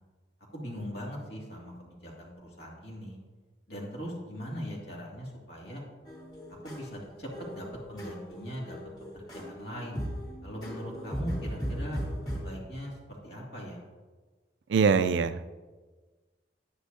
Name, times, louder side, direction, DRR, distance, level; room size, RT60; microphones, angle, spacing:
voice 1, 0.5-3.2 3.7-5.8 6.6-8.8 9.1-10.0 10.4-12.0 12.4-13.8, equal, 65° left, -3 dB, 2.3 m, -40 dB
sound 1, 6.0-12.4, equal, 25° left, 2.7 m, -38 dB
voice 2, 14.7-15.5, right 5 dB, 85° right, 12 dB, 0.4 m, -23 dB
10.5 x 9.7 x 2.7 m, 1.3 s
head